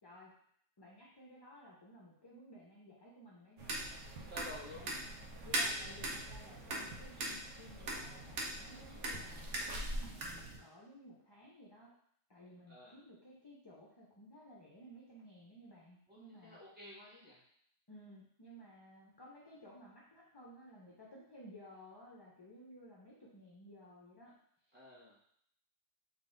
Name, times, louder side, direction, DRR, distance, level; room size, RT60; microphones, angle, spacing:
voice 1, 0.0-0.3 0.8-3.8 4.8-4.9 5.4-11.9 12.3-16.6 17.9-24.3, equal, 25° left, -5 dB, 0.5 m, -56 dB
sound 1, 3.6-10.6, right 1 dB, 75° right, 1.1 m, -41 dB
voice 2, 4.1-4.9 5.7-5.8 12.7-13.0 16.1-17.4 24.7-25.2, left 1 dB, 10° right, -8 dB, 1.5 m, -52 dB
3.9 x 2.7 x 3.8 m, 0.67 s
omnidirectional pair, 1.3 m